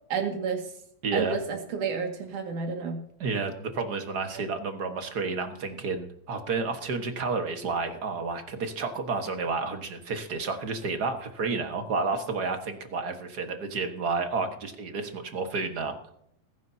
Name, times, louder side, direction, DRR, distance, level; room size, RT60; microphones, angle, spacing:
voice 1, 0.1-0.7 1.1-3.0 4.3-4.5, right 5 dB, 85° right, 4 dB, 3.6 m, -31 dB
voice 2, 1.0-1.4 3.2-16.0, right 4 dB, 45° right, 6 dB, 1.5 m, -31 dB
21.5 x 11.5 x 2.8 m, 0.69 s
omnidirectional pair, 3.4 m